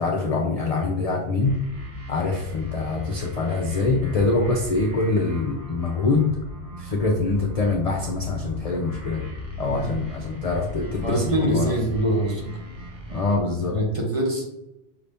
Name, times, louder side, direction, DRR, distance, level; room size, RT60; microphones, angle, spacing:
voice 1, 0.0-1.6 2.1-6.3 6.8-9.3 9.6-11.8 13.1-13.8, left 3 dB, 50° left, 1 dB, 0.4 m, -24 dB
sound 1, 1.4-13.4, left 2 dB, 75° right, 1.5 m, -37 dB
sound 2, 7.5-13.9, left 2 dB, 5° left, 0.9 m, -41 dB
voice 2, 11.0-12.6 13.7-14.4, right 1 dB, 30° right, -1 dB, 0.8 m, -24 dB
5.6 x 2.7 x 3.4 m, 0.91 s
omnidirectional pair, 1.2 m